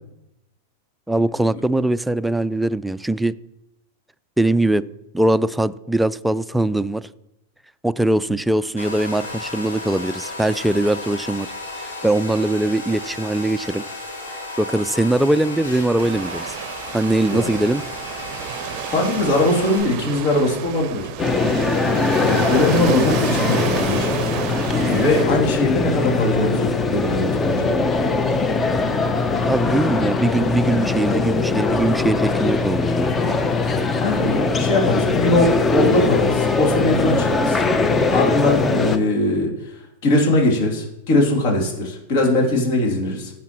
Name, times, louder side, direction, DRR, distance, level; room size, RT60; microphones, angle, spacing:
voice 1, 1.1-3.3 4.4-4.8 5.1-7.1 7.8-11.5 11.8-13.8 14.6-16.6 16.9-17.8 29.4-33.1, right 1 dB, 5° right, 0.3 m, -21 dB
Domestic sounds home sounds, 8.8-19.8, left 2 dB, 90° left, 3.9 m, -33 dB
Waves surf, 16.0-25.2, right 12 dB, 50° right, 0.6 m, -31 dB
voice 2, 18.9-21.1 22.2-24.2 24.7-27.7 29.9-30.0 34.0-37.7 38.1-43.3, left 1 dB, 55° left, 2.9 m, -21 dB
sound 1, 21.2-39.0, left 4 dB, 20° left, 0.8 m, -21 dB
15.5 x 6.3 x 3.0 m
hypercardioid pair, 100°, 0 cm